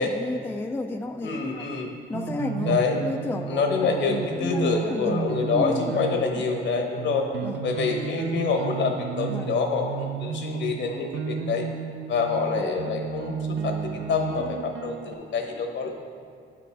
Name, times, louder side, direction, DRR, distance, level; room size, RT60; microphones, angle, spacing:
voice 1, 0.0-1.7 2.1-6.4 7.4-7.6 9.3-9.6 12.6-12.9, left 2 dB, 10° left, 5 dB, 0.3 m, -32 dB
voice 2, 1.2-1.9 2.6-3.0 3.5-7.3 7.6-11.7 12.1-13.8 14.1-15.9, left 5 dB, 65° left, 3 dB, 1.0 m, -26 dB
sound 1, 2.1-15.1, right 6 dB, 65° right, 0.5 m, -33 dB
9.2 x 5.1 x 3.4 m, 2.2 s
cardioid pair, 90°, 20 cm